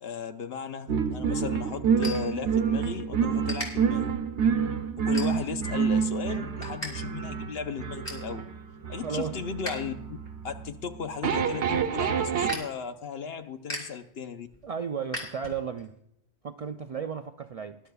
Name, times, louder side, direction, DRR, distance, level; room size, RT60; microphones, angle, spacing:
voice 1, 0.0-4.1 5.0-8.4 8.9-10.2 10.4-14.5, left 6 dB, 65° left, 9 dB, 1.0 m, -36 dB
sound 1, 0.9-2.9 3.2-3.7 4.2-4.5 5.0-5.7 6.1-6.9 7.2-7.3 7.7-8.3 8.8-9.7 10.1-15.9, left 1 dB, 40° left, 3.2 m, -40 dB
sound 2, 0.9-12.6, right 7 dB, 80° right, 1.1 m, -28 dB
voice 2, 9.0-9.3 14.6-15.9 16.4-17.8, right 6 dB, 55° right, 7 dB, 0.4 m, -34 dB
20.0 x 11.5 x 2.3 m, 0.77 s
omnidirectional pair, 1.1 m